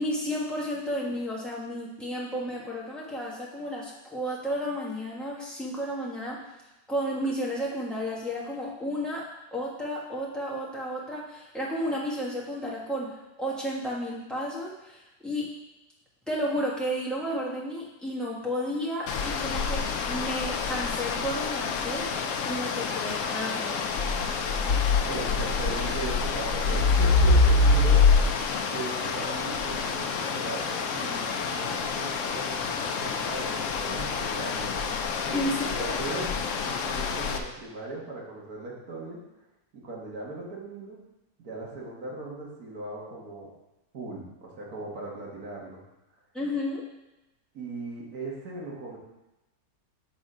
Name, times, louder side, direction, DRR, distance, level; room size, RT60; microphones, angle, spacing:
voice 1, 0.0-6.4 6.9-9.2 9.5-15.5 16.3-22.1 22.4-23.8 35.3-35.5 35.8-35.9 46.3-46.8, equal, ahead, -5 dB, 1.3 m, -32 dB
sound 1, 19.1-37.4, left 4 dB, 65° left, 0.8 m, -26 dB
voice 2, 25.1-28.3 28.7-34.8 35.2-36.3 36.6-39.2 39.7-41.0 41.4-43.5 43.9-45.8 47.5-49.0, right 2 dB, 60° right, -4 dB, 2.1 m, -38 dB
7.2 x 4.1 x 5.0 m, 0.99 s
omnidirectional pair, 1.8 m